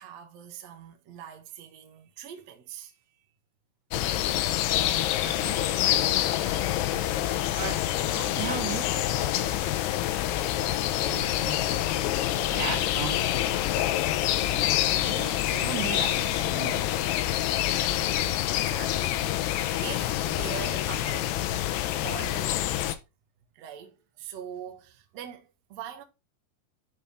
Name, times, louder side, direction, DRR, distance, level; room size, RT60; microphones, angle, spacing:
voice 1, 0.0-3.2 10.6-10.8 18.1-21.4 22.0-23.0 23.5-26.0, right 9 dB, 80° right, 1.5 m, -43 dB
sound 1, 3.9-23.0, left 13 dB, 85° left, 2.3 m, -27 dB
voice 2, 5.2-6.2 7.5-7.8 8.1-9.8 10.3-11.8 12.4-13.8 15.0-16.9, right 8 dB, 65° right, 3.0 m, -38 dB
sound 2, 8.1-14.9, left 10 dB, 65° left, 3.3 m, -45 dB
12.0 x 4.5 x 3.5 m
omnidirectional pair, 5.6 m